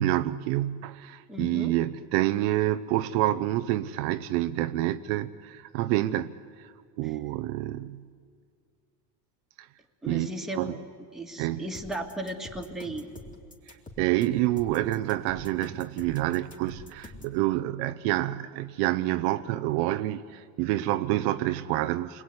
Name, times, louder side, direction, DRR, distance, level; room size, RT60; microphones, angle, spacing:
voice 1, 0.0-6.3 7.0-8.0 9.6-9.7 10.1-10.8 11.4-11.6 14.0-22.2, right 15 dB, 60° right, 10 dB, 0.9 m, -28 dB
voice 2, 1.3-1.8 7.0-7.2 10.0-10.8 11.1-13.1, right 1 dB, ahead, 1 dB, 2.1 m, -36 dB
sound 1, 11.7-17.4, left 2 dB, 15° left, 3.1 m, -45 dB
28.5 x 21.0 x 9.7 m, 2.1 s
supercardioid pair, 135°, 49 cm